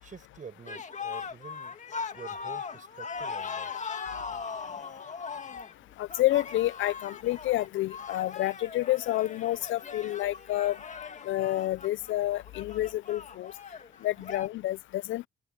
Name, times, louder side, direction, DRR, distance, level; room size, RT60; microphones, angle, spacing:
voice 1, 0.0-1.8 2.1-3.7 4.7-4.8, right 6 dB, 40° right, 5.4 m, -47 dB
sound 1, 0.6-14.5, left 6 dB, 35° left, 2.0 m, -39 dB
voice 2, 6.0-10.8 11.2-13.5 14.0-15.3, left 15 dB, 75° left, 0.5 m, -29 dB
open air
cardioid pair, 90°, 20 cm